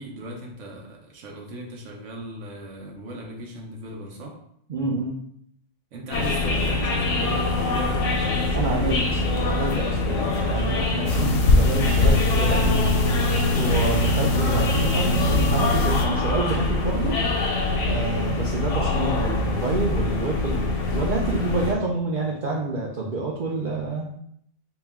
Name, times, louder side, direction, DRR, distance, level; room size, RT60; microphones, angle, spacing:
voice 1, 0.0-4.4 5.9-9.9, right 1 dB, 80° right, 0 dB, 1.0 m, -38 dB
voice 2, 4.7-5.1 8.5-9.0 9.3-12.8 13.6-17.5 17.8-24.1, right 3 dB, 50° right, -2 dB, 0.6 m, -28 dB
sound 1, 6.1-21.7, left 2 dB, 85° left, 1.0 m, -24 dB
sound 2, 11.1-16.1, left 2 dB, 65° left, 0.7 m, -22 dB
4.3 x 2.2 x 3.4 m, 0.68 s
omnidirectional pair, 1.3 m